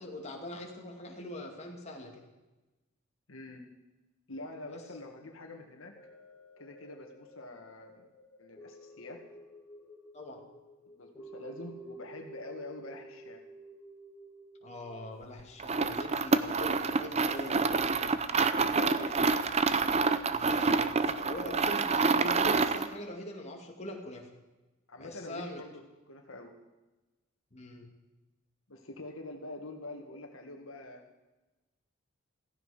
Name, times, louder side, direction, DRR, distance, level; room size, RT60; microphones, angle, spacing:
voice 1, 0.0-2.2 4.7-4.8 10.1-10.4 14.6-18.1 20.3-20.9 21.2-24.3 25.0-25.6 27.5-27.9, left 1 dB, 30° left, 0 dB, 2.3 m, -42 dB
voice 2, 3.3-3.6 4.3-5.9 6.6-8.1 8.4-9.2 10.9-13.4 18.6-19.3 24.9-25.7 26.1-26.5 28.7-31.0, left 2 dB, 80° left, 3 dB, 1.9 m, -45 dB
sound 1, 6.0-16.3 16.8-16.9, right 2 dB, 10° left, 4.4 m, -52 dB
sound 2, 15.6-22.9, right 4 dB, 30° right, 0.6 m, -27 dB
15.5 x 15.0 x 5.1 m, 1.1 s
head